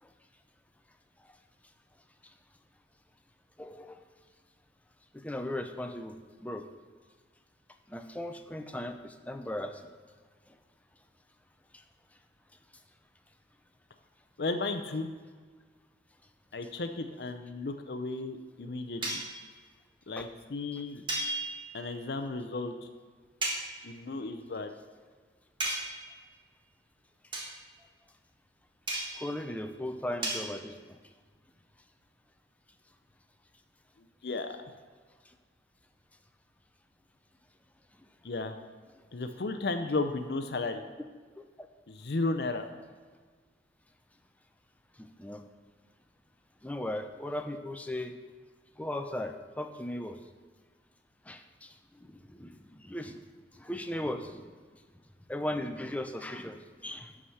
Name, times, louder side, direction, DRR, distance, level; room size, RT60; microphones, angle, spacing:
voice 1, 3.6-4.0 5.1-6.7 7.9-9.8 10.5-10.6 11.7-11.8 20.1-20.3 20.7-20.8 29.0-31.0 35.3-35.4 41.4-41.5 45.0-45.4 46.6-48.2 48.8-50.2 51.2-53.2 53.5-54.5 55.3-57.2, left 1 dB, 10° left, 6 dB, 0.6 m, -38 dB
voice 2, 14.4-15.1 16.5-19.2 20.1-21.0 21.7-22.7 23.8-24.7 34.0-34.6 38.2-38.6 39.1-40.8 41.9-42.6, left 3 dB, 60° left, 7 dB, 0.6 m, -34 dB
sound 1, 19.0-19.4 21.1-21.8 23.4-23.7 25.6-26.1 27.3-27.6 28.9-29.3 30.2-30.5, right 1 dB, 25° right, 1.5 m, -34 dB
11.5 x 4.9 x 5.6 m, 1.5 s
head